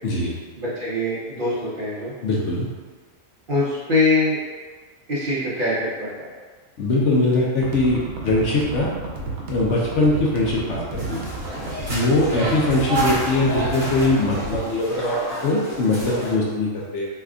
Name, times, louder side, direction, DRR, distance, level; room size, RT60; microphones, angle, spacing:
voice 1, 0.0-0.4 2.2-2.7 6.8-8.9 9.5-11.2 11.9-15.1 15.4-17.0, left 2 dB, 65° left, -4 dB, 0.9 m, -21 dB
voice 2, 0.6-2.1 3.5-4.4 5.1-6.3 12.3-12.5, left 2 dB, 45° right, -9 dB, 0.8 m, -23 dB
sound 1, 7.6-14.6, right 3 dB, 90° right, 1.1 m, -33 dB
sound 2, 11.0-16.4, right 1 dB, 75° right, 1.3 m, -29 dB
3.3 x 2.2 x 3.6 m, 1.5 s
omnidirectional pair, 1.4 m